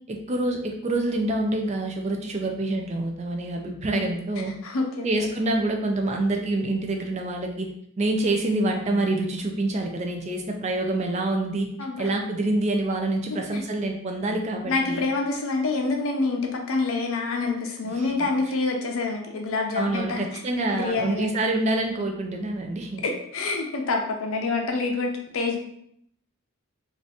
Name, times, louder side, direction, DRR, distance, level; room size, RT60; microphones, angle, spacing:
voice 1, 0.1-4.5 5.0-7.7 8.0-11.7 12.0-15.0 17.8-18.3 19.7-23.0, right 2 dB, 30° right, 2 dB, 0.3 m, -26 dB
voice 2, 4.6-5.3 11.8-12.1 13.3-13.6 14.6-20.2 20.7-21.5 23.0-25.6, left 3 dB, 75° left, 2 dB, 0.6 m, -27 dB
2.6 x 2.5 x 3.4 m, 0.71 s
head